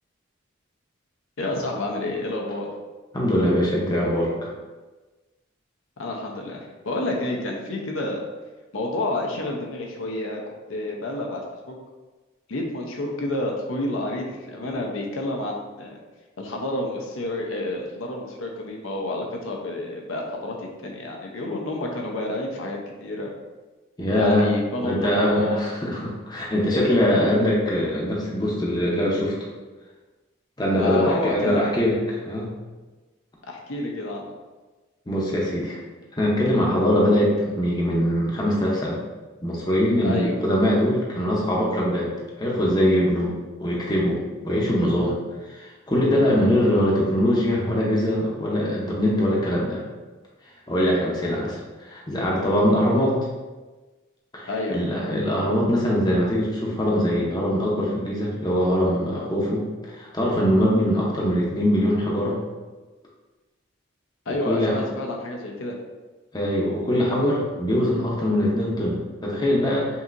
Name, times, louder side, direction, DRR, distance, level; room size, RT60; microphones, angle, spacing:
voice 1, 1.4-2.7 6.0-8.2 8.7-10.4 10.7-11.8 12.5-16.0 16.4-23.3 24.1-25.6 26.7-27.0 30.7-31.6 33.5-34.3 40.0-40.4 54.5-54.8 64.3-65.7, left 2 dB, 75° left, 0 dB, 0.6 m, -29 dB
voice 2, 3.1-4.5 24.0-24.5 24.8-29.3 30.6-32.5 35.1-35.8 36.2-39.0 39.4-42.1 42.4-43.3 43.6-45.2 45.4-49.8 50.7-53.2 54.3-62.4 64.3-65.0 66.3-69.9, equal, 20° left, -4 dB, 0.7 m, -22 dB
5.5 x 2.8 x 2.5 m, 1.2 s
head